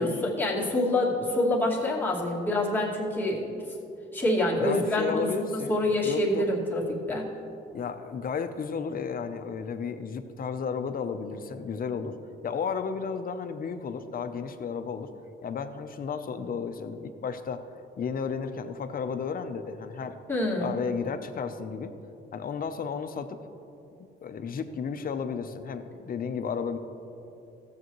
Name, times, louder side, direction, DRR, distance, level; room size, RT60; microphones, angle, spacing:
voice 1, 0.0-3.4 4.1-6.8 7.1-7.3 20.3-20.7, left 1 dB, 10° left, -6 dB, 2.3 m, -26 dB
voice 2, 4.6-5.8 6.0-6.4 7.7-12.2 12.4-15.1 15.4-17.6 18.0-20.2 20.6-21.9 22.3-23.4 24.2-26.8, left 6 dB, 45° left, 8 dB, 0.7 m, -33 dB
15.5 x 7.6 x 3.1 m, 2.7 s
cardioid pair, 90°, 20 cm